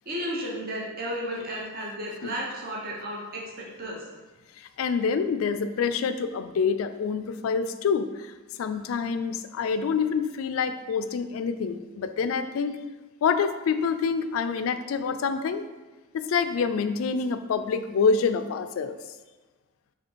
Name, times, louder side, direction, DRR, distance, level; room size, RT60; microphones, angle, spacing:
voice 1, 0.1-4.0, equal, 45° right, -3 dB, 0.8 m, -33 dB
voice 2, 4.6-12.8 13.2-15.6 16.1-19.0, left 5 dB, 85° left, 11 dB, 0.3 m, -27 dB
4.2 x 2.7 x 4.4 m, 1.2 s
head